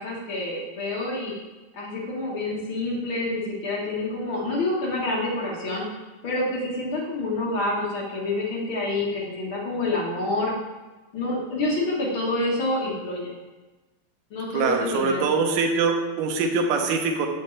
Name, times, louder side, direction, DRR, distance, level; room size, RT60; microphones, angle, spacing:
voice 1, 0.0-1.3 1.7-5.9 6.2-10.5 11.1-13.3 14.3-15.3, left 2 dB, 55° left, -4 dB, 1.5 m, -27 dB
voice 2, 14.5-17.3, right 4 dB, 85° right, 2 dB, 2.4 m, -23 dB
7.5 x 7.2 x 3.2 m, 1.2 s
omnidirectional pair, 3.8 m